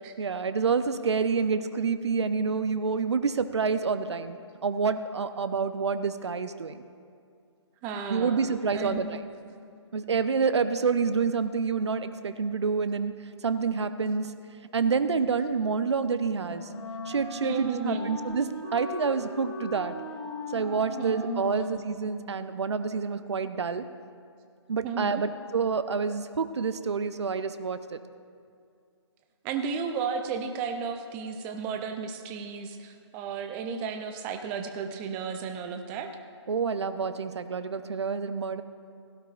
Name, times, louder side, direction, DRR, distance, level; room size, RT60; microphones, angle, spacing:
voice 1, 0.2-6.8 8.1-9.2 9.9-13.1 13.4-14.3 14.7-16.7 17.1-20.0 20.5-23.8 24.7-28.0 36.5-38.6, right 5 dB, 65° right, 11 dB, 0.6 m, -28 dB
voice 2, 7.8-9.2 17.4-18.2 21.0-21.7 24.8-25.3 29.4-36.1, right 5 dB, 10° right, 6 dB, 0.4 m, -33 dB
Wind instrument woodwind instrument, 16.3-22.3, left 1 dB, 20° left, 1.6 m, -39 dB
16.5 x 16.0 x 2.4 m, 2.3 s
figure-of-eight pair, 145°, 15 cm